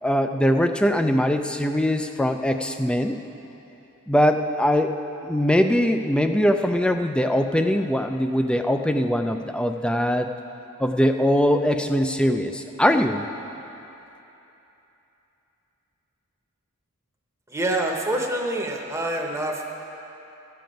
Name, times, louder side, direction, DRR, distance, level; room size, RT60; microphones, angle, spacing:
voice 1, 0.0-3.2 4.1-4.9 5.2-10.3 10.8-13.3, equal, 5° left, 7 dB, 0.3 m, -21 dB
voice 2, 17.5-19.6, right 1 dB, 15° right, 0 dB, 0.8 m, -26 dB
14.0 x 7.6 x 5.2 m, 3.0 s
head